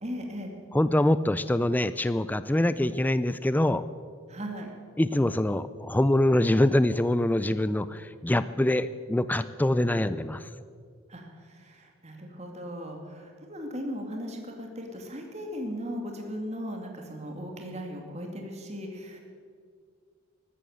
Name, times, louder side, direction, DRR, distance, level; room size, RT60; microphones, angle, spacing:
voice 1, 0.0-0.5 4.3-4.7 11.1-19.2, equal, 30° right, 2 dB, 2.3 m, -37 dB
voice 2, 0.7-3.8 5.0-10.5, left 1 dB, 10° left, 14 dB, 0.3 m, -24 dB
14.5 x 12.5 x 7.9 m, 2.1 s
head